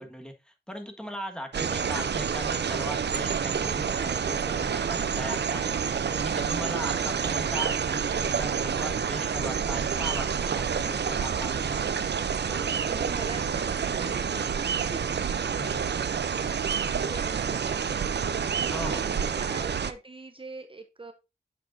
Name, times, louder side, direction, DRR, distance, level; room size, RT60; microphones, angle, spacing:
voice 1, 0.0-5.8 6.2-12.1 12.4-12.8 15.6-15.9 18.6-19.1, equal, 5° left, 3 dB, 1.4 m, -39 dB
sound 1, 1.5-19.9, right 7 dB, 85° right, 0.5 m, -28 dB
voice 2, 12.9-15.2 16.9-21.1, right 2 dB, 30° right, 7 dB, 0.7 m, -43 dB
7.8 x 6.4 x 2.6 m, 0.27 s
wide cardioid pair, 60°, 17 cm